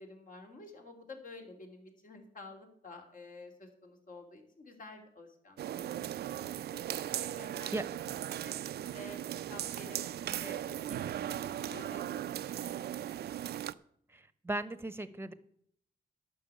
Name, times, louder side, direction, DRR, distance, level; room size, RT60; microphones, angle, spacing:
voice 1, 0.0-6.4 6.9-7.7 8.0-9.2 9.5-12.9, left 2 dB, 55° left, 3 dB, 2.9 m, -51 dB
sound 1, 5.6-13.7, right 11 dB, 85° right, 0.4 m, -38 dB
voice 2, 14.1-15.3, right 2 dB, 15° right, 15 dB, 0.9 m, -37 dB
11.5 x 6.2 x 8.4 m, 0.66 s
cardioid pair, 90°, 16 cm